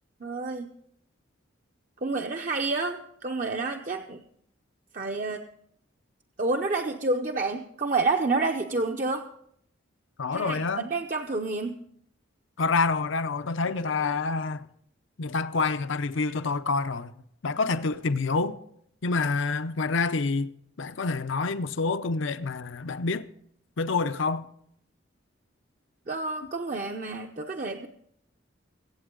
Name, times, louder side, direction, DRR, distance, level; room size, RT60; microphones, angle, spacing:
voice 1, 0.2-0.7 2.0-4.2 4.9-5.5 6.4-9.3 10.3-11.8 26.1-27.9, right 3 dB, 40° right, 0.6 m, -29 dB
voice 2, 10.2-10.9 12.6-14.7 15.2-17.1 17.4-18.6 19.0-20.5 20.8-23.3 23.8-24.4, left 4 dB, 70° left, 0.7 m, -27 dB
24.0 x 8.1 x 3.8 m
head